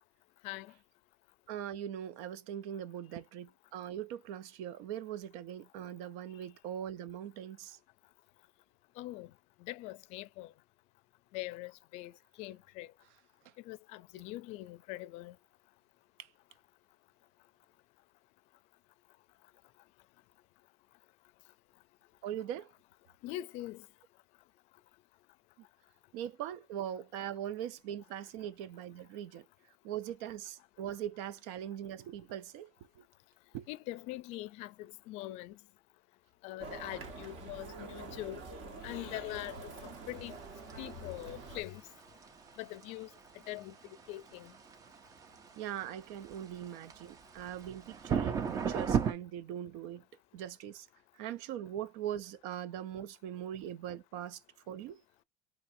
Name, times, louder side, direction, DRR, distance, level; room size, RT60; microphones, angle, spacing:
voice 1, 1.5-7.8 22.2-22.7 26.1-29.4 29.8-32.7 33.5-33.7 45.6-50.0 50.3-50.9 51.2-54.4 54.7-55.0, right 10 dB, 75° right, 0.5 m, -41 dB
voice 2, 9.0-9.3 9.6-10.5 11.3-12.1 12.4-12.9 13.7-15.3 23.2-23.8 33.7-35.5 36.4-38.4 38.8-40.3 40.8-41.8 42.6-43.1 43.5-43.7 44.1-44.5, left 17 dB, 65° left, 0.4 m, -42 dB
sound 1, 36.6-41.6, right 3 dB, 55° right, 1.3 m, -46 dB
sound 2, 39.3-49.1, right 7 dB, 30° right, 0.6 m, -37 dB
4.1 x 3.3 x 2.6 m
cardioid pair, 145°, 12 cm